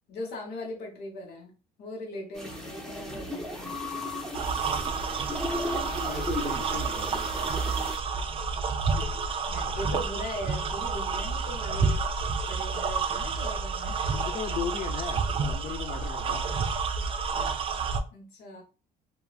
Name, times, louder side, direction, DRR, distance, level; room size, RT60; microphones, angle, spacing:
voice 1, 0.1-4.0 9.5-12.1 12.5-14.0 18.1-18.6, left 1 dB, 75° left, 1.1 m, -39 dB
sound 1, 2.3-8.0, left 1 dB, 5° left, 0.7 m, -36 dB
sound 2, 4.3-18.0, right 4 dB, 35° right, 0.4 m, -29 dB
voice 2, 5.6-7.3 9.0-9.1 14.2-16.5, left 8 dB, 45° left, 0.5 m, -37 dB
2.9 x 2.2 x 2.3 m
cardioid pair, 110°, 17 cm